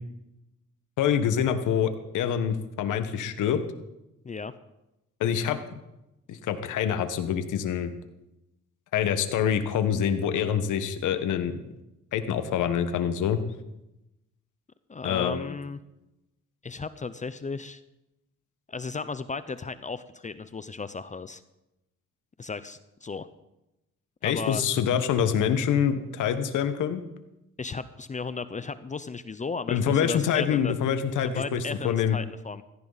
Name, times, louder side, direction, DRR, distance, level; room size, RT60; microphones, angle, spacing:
voice 1, 1.0-3.6 5.2-5.6 6.3-7.9 8.9-11.6 12.1-13.4 15.0-15.5 24.2-27.0 29.7-32.2, left 8 dB, 80° left, 9 dB, 1.4 m, -26 dB
voice 2, 14.9-15.8 16.6-17.8 18.7-21.4 22.4-23.3 24.2-24.6 27.6-30.7 31.2-32.6, left 4 dB, 25° left, 13 dB, 0.6 m, -35 dB
16.5 x 14.5 x 4.1 m, 0.93 s
cardioid pair, 90°, 30 cm